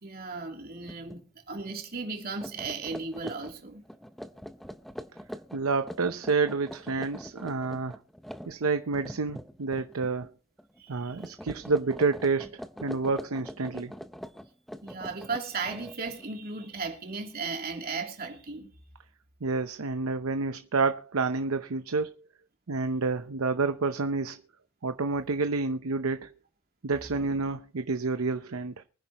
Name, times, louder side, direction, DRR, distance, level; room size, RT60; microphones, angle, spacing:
voice 1, 0.0-3.8 10.8-11.4 14.8-18.7, right 4 dB, 45° right, 3.0 m, -36 dB
sound 1, 0.8-1.2 1.5-1.7 2.2-10.3 10.6-10.9 11.2-16.3, equal, ahead, 0.7 m, -43 dB
voice 2, 5.5-8.0 8.5-10.3 10.9-13.9 19.4-22.1 22.7-24.4 24.8-26.3 26.8-28.8, right 4 dB, 85° right, 0.8 m, -29 dB
24.0 x 10.0 x 3.0 m
head